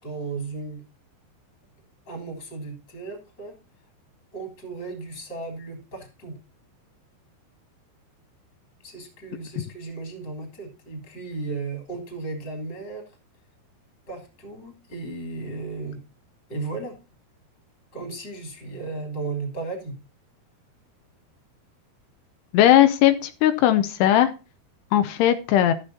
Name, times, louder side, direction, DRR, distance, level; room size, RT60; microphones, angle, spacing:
voice 1, 0.0-0.8 2.1-3.6 4.3-6.4 8.8-13.1 14.1-16.0 16.5-17.0 17.9-19.9, right 3 dB, 30° left, 2 dB, 3.7 m, -35 dB
voice 2, 22.5-24.3 24.9-25.7, left 12 dB, 90° left, 10 dB, 2.8 m, -18 dB
13.0 x 6.8 x 4.1 m, 0.31 s
omnidirectional pair, 4.6 m